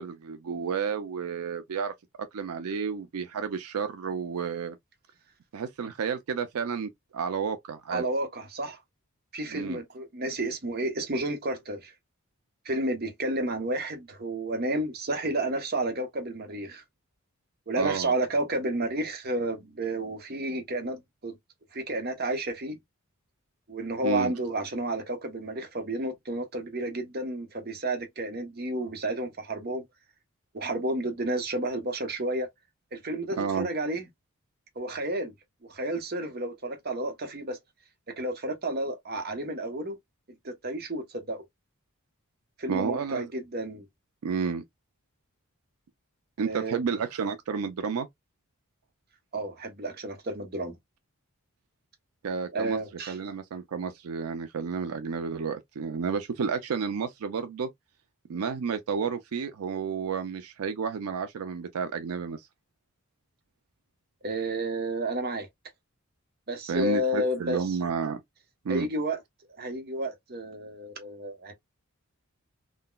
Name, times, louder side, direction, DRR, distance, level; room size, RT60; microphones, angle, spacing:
voice 1, 0.0-1.9 2.3-4.8 5.5-8.0 9.5-9.8 17.8-18.1 24.0-24.3 33.4-33.7 42.7-43.3 44.2-44.6 46.4-48.1 52.2-52.8 53.1-57.7 58.3-62.4 66.7-68.2 68.6-68.9, right 6 dB, 85° right, 0.4 m, -31 dB
voice 2, 7.9-8.8 9.3-11.9 12.6-16.8 17.7-21.3 21.7-22.8 23.7-29.8 30.5-32.5 32.9-34.0 34.8-35.3 35.6-37.6 38.2-40.0 40.4-41.4 42.6-43.9 46.4-46.8 49.3-50.7 52.5-53.2 64.2-65.5 66.5-67.6 68.7-69.2 69.6-71.5, right 1 dB, 45° right, 0.8 m, -31 dB
3.8 x 2.2 x 2.2 m
head